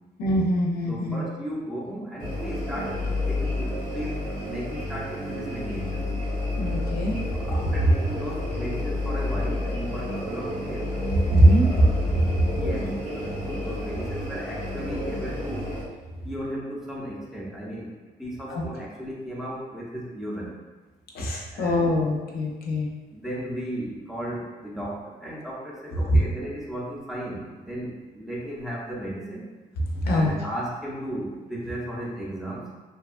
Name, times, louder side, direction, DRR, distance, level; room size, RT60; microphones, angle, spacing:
voice 1, 0.2-1.2 6.6-7.2 11.3-11.7 12.1-12.2 18.5-18.6 21.1-22.9 30.1-30.3, equal, 75° left, -1 dB, 0.5 m, -22 dB
voice 2, 0.9-3.0 3.3-6.1 7.3-10.9 11.5-12.3 12.6-15.7 16.2-17.9 18.2-20.5 21.5-21.9 23.1-29.5 30.0-32.7, right 1 dB, ahead, -6 dB, 0.6 m, -35 dB
fridge-and-some-bg-after-chorus, 2.2-15.8, left 2 dB, 80° right, 1.2 m, -30 dB
2.7 x 2.3 x 2.4 m, 1.3 s
cardioid pair, 105°, 16 cm